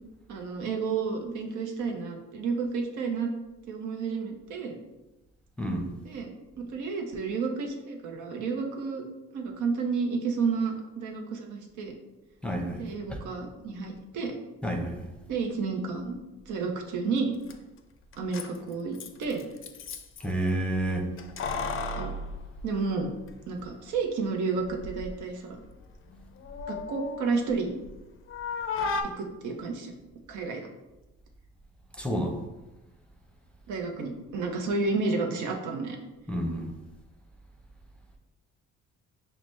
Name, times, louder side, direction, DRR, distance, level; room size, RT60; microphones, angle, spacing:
voice 1, 0.3-3.3 3.7-4.8 6.0-9.0 9.3-11.9 12.8-14.4 15.3-16.2 16.5-17.3 18.2-19.4 22.0-22.1 22.6-23.1 23.5-25.6 26.7-27.7 29.2-29.9 30.3-30.7 33.7-36.0, right 4 dB, 85° right, 2 dB, 0.7 m, -31 dB
voice 2, 5.6-5.9 12.4-13.2 14.6-15.1 20.2-21.1 31.9-32.4 36.3-36.7, right 1 dB, 5° left, 2 dB, 0.6 m, -30 dB
Keys jangling, 17.2-17.3 17.5-17.6 18.1-20.3 21.2-23.3 23.6-23.7 24.6-25.2 25.5-28.0 28.3-29.0, left 4 dB, 45° left, 0.4 m, -35 dB
5.8 x 2.1 x 3.2 m, 1.0 s
cardioid pair, 90°, 30 cm